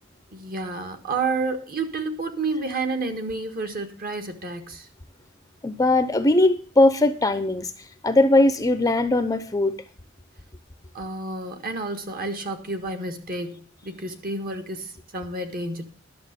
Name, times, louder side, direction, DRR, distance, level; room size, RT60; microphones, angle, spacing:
voice 1, 0.3-4.9 10.9-15.8, right 3 dB, 45° right, 7 dB, 1.5 m, -30 dB
voice 2, 5.6-7.7 8.0-9.8, left 2 dB, 15° left, 10 dB, 0.6 m, -20 dB
11.5 x 6.7 x 6.6 m, 0.41 s
head